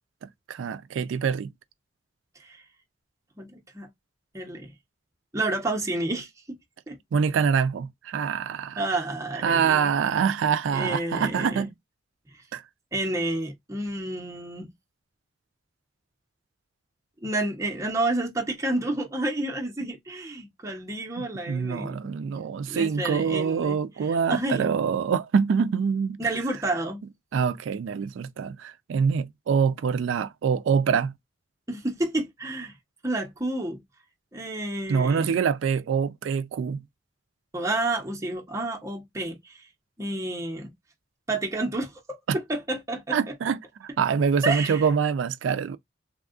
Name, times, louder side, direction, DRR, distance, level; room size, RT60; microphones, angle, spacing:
voice 1, 0.2-1.5 7.1-9.0 9.4-11.7 12.5-12.6 21.2-26.3 27.3-31.1 34.9-36.8 42.3-42.4 43.1-45.8, right 6 dB, 90° right, 0.3 m, -25 dB
voice 2, 3.4-3.9 4.3-4.7 5.3-6.3 6.9-7.0 8.8-9.9 10.7-11.7 12.9-14.7 17.2-22.0 22.7-23.8 24.3-24.7 26.2-27.0 31.7-32.7 33.0-33.8 34.3-35.4 37.5-39.6 40.0-40.7 41.3-43.2 44.4-44.8, right 2 dB, 15° right, 0.8 m, -30 dB
3.5 x 2.3 x 2.3 m
head